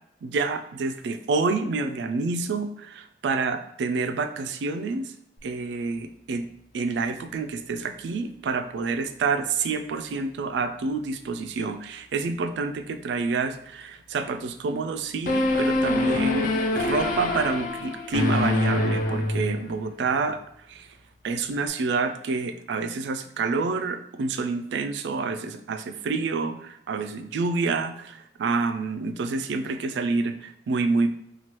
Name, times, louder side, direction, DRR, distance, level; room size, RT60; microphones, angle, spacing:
voice 1, 0.2-5.1 5.4-6.5 6.7-20.4 20.7-20.9 21.2-31.1, right 4 dB, 80° right, 8 dB, 0.3 m, -28 dB
sound 1, 15.3-19.9, left 2 dB, 50° left, 0.3 m, -25 dB
2.9 x 2.3 x 3.0 m, 0.73 s
head